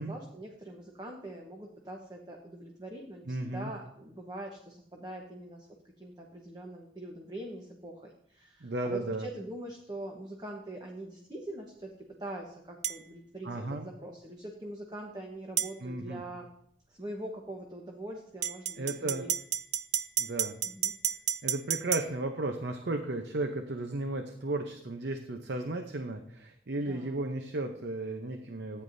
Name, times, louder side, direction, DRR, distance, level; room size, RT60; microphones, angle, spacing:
voice 1, 0.0-5.7 6.0-16.5 16.9-19.3 20.6-20.9 26.8-27.2, right 1 dB, 25° right, 1 dB, 1.1 m, -43 dB
voice 2, 3.3-3.7 8.6-9.3 13.4-13.9 15.8-16.2 18.8-19.2 20.2-20.5 21.4-28.8, right 2 dB, 75° right, 6 dB, 0.8 m, -34 dB
sound 1, 12.8-13.0 15.6-15.7 18.4-22.1, right 10 dB, 40° right, 0.3 m, -31 dB
14.0 x 9.5 x 2.7 m, 0.70 s
head